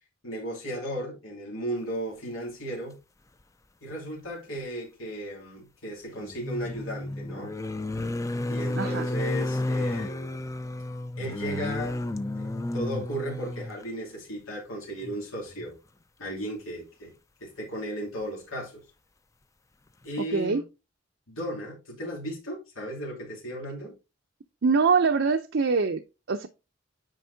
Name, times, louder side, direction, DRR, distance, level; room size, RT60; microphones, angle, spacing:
voice 1, 0.2-3.0 3.8-7.5 8.4-10.4 11.2-12.0 12.4-12.5 12.7-15.8 16.2-17.1 17.4-18.8 20.0-20.6 21.3-23.9, equal, 90° left, 2.9 m, -35 dB
sound 1, 3.9-4.0 6.2-13.8 15.0-15.2 15.5-15.7, left 1 dB, 15° left, 0.4 m, -32 dB
voice 2, 8.8-9.1 20.2-20.6 24.6-26.0 26.3-26.5, right 5 dB, 60° right, 0.6 m, -24 dB
9.2 x 5.2 x 2.7 m
head